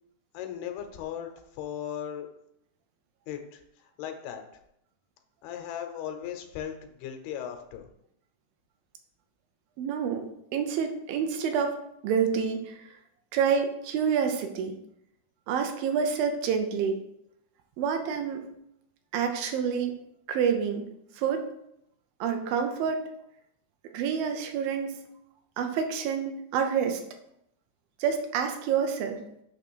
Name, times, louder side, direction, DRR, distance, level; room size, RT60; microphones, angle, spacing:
voice 1, 0.3-2.3 3.3-4.6 5.4-7.8, left 9 dB, 90° left, 5 dB, 2.8 m, -37 dB
voice 2, 9.8-10.3 10.5-11.8 12.0-12.8 13.3-14.8 15.5-17.0 17.8-18.5 19.1-20.0 20.3-20.9 21.2-21.5 22.2-23.0 23.9-24.9 25.6-27.0 28.0-29.2, right 7 dB, 75° right, 5 dB, 2.5 m, -28 dB
9.0 x 3.1 x 6.2 m, 0.77 s
omnidirectional pair, 4.4 m